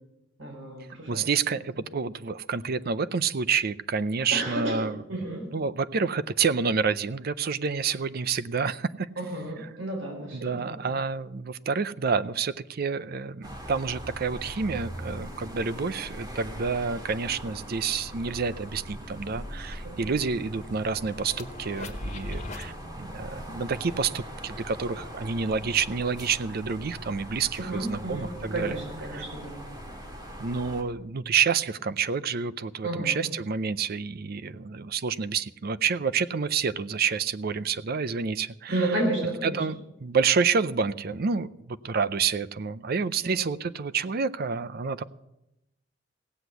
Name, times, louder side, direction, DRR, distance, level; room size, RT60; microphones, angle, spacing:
voice 1, 0.4-1.3 4.3-5.5 9.2-10.9 19.8-20.0 27.6-29.6 32.8-33.3 38.7-39.6 43.2-43.3, right 1 dB, 85° right, 1 dB, 4.1 m, -32 dB
voice 2, 1.1-5.3 5.5-9.1 10.3-28.8 29.1-29.2 30.4-38.9 39.4-45.0, right 5 dB, 55° right, 15 dB, 0.5 m, -28 dB
sound 1, 13.4-30.8, equal, 20° right, 1.9 m, -41 dB
sound 2, 17.7-22.7, left 2 dB, 40° left, 1.6 m, -42 dB
16.5 x 7.9 x 8.1 m, 0.92 s
head